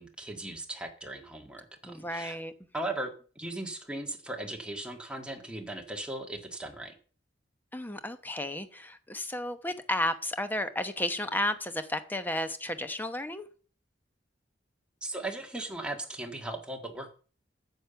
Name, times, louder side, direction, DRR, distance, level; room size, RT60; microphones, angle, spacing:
voice 1, 0.0-2.4 2.7-7.0 15.0-17.2, right 2 dB, 5° right, 1.7 m, -38 dB
voice 2, 1.8-2.5 7.7-13.5, left 1 dB, 10° left, 0.9 m, -33 dB
9.2 x 7.4 x 6.9 m
head